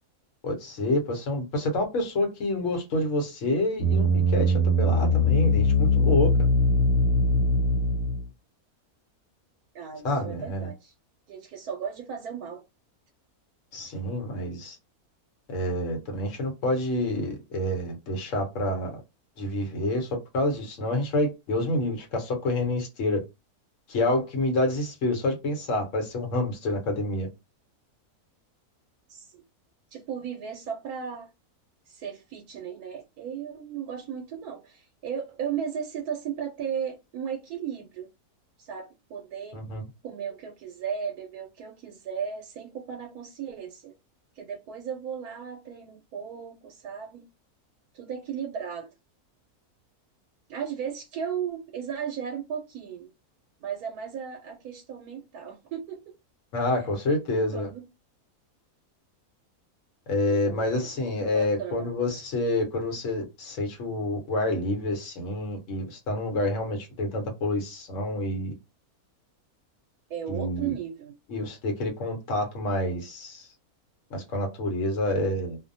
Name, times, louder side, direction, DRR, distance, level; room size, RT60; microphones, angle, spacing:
voice 1, 0.4-6.3 10.0-10.7 13.7-14.8 15.5-19.0 19.4-23.2 23.9-27.3 39.5-39.8 56.5-57.7 60.1-68.5 70.3-70.8 71.3-73.5 74.1-75.6, left 1 dB, 60° left, 1.1 m, -28 dB
sound 1, 3.8-8.3, left 1 dB, 80° left, 1.2 m, -22 dB
voice 2, 9.7-10.9 11.3-12.6 29.1-29.4 29.9-31.3 31.9-38.1 38.6-39.6 40.0-43.9 44.4-47.2 47.9-48.9 50.5-53.1 53.6-56.1 56.8-56.9 57.5-57.9 60.2-61.9 70.1-71.2, right 8 dB, 85° right, 1.1 m, -35 dB
2.6 x 2.1 x 2.6 m
omnidirectional pair, 1.6 m